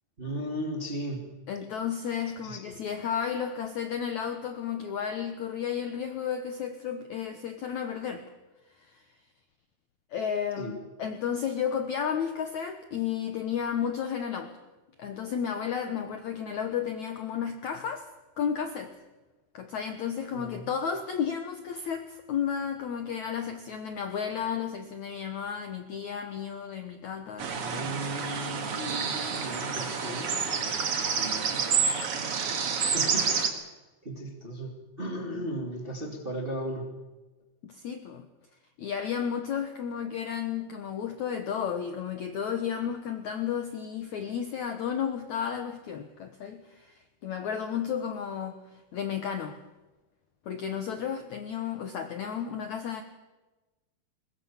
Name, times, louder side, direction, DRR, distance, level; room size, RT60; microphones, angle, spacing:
voice 1, 0.2-1.3 2.4-2.6 10.6-10.8 20.3-20.7 27.5-30.7 31.2-31.9 32.8-33.3 34.0-36.9, right 1 dB, 20° right, 2 dB, 1.6 m, -36 dB
voice 2, 1.5-8.2 8.8-9.1 10.1-14.5 15.0-18.1 18.4-18.9 19.5-27.9 37.6-38.3 38.8-49.6 50.4-53.0, left 8 dB, 70° left, 7 dB, 1.8 m, -33 dB
sound 1, 27.4-33.5, right 6 dB, 45° right, 2.1 m, -29 dB
22.0 x 20.5 x 7.3 m, 1.1 s
omnidirectional pair, 4.8 m